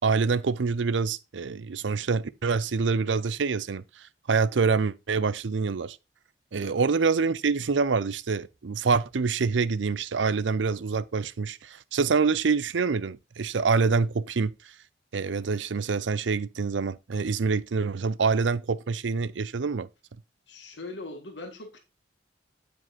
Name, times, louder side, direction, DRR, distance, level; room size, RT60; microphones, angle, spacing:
voice 1, 0.0-6.0 6.5-14.5 15.1-19.9, right 5 dB, 85° right, 0.6 m, -26 dB
voice 2, 20.5-21.8, left 2 dB, 75° left, 1.7 m, -41 dB
9.4 x 5.1 x 4.2 m
head